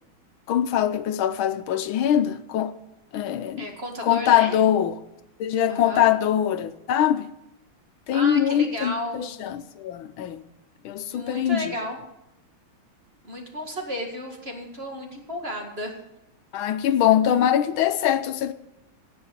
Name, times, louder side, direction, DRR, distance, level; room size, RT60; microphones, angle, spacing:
voice 1, 0.5-2.7 3.1-3.7 4.0-5.0 5.4-7.3 8.1-10.4 10.8-11.7 16.5-18.5, left 10 dB, 80° left, 1.4 m, -22 dB
voice 2, 3.6-4.6 5.7-6.1 8.1-9.3 11.1-12.0 13.2-15.9, equal, 30° right, 2.1 m, -33 dB
17.5 x 5.9 x 8.1 m
omnidirectional pair, 2.3 m